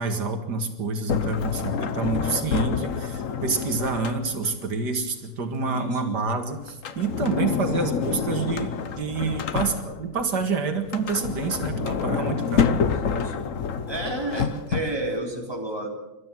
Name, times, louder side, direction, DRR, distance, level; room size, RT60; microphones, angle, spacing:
voice 1, 0.0-12.8, right 4 dB, 85° right, 6 dB, 2.4 m, -28 dB
Sliding door, 1.1-4.6 6.7-10.2 10.8-15.2, left 6 dB, 55° left, 1.3 m, -28 dB
voice 2, 5.6-6.2 11.5-11.6 13.0-13.5 13.9-15.9, right 1 dB, 15° right, 1 dB, 3.7 m, -31 dB
26.5 x 13.0 x 7.6 m, 1.0 s
omnidirectional pair, 1.8 m